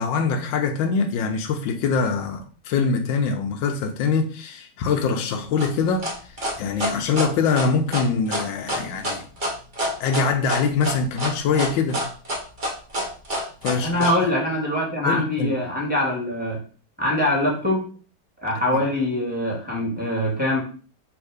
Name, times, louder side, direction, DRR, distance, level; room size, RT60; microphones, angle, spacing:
voice 1, 0.0-6.1 6.6-9.3 10.0-12.0 13.6-14.1 15.0-15.5 18.7-18.8, left 5 dB, 80° left, 1.3 m, -23 dB
sound 1, 5.6-14.1, equal, 30° right, 1.0 m, -27 dB
voice 2, 13.8-16.6 17.0-17.9 18.4-20.6, left 1 dB, 5° right, 1.7 m, -23 dB
3.6 x 3.0 x 4.7 m
omnidirectional pair, 2.1 m